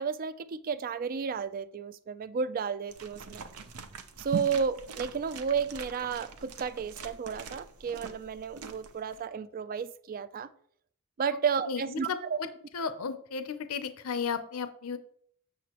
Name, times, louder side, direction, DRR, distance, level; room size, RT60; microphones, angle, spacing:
voice 1, 0.0-3.4 4.2-10.5 11.2-12.4, right 6 dB, 40° right, 0.3 m, -32 dB
sound 1, 2.9-9.2, right 5 dB, 80° right, 0.7 m, -42 dB
voice 2, 11.7-12.5 12.7-15.0, left 5 dB, 70° left, 0.6 m, -34 dB
7.7 x 6.8 x 2.9 m
head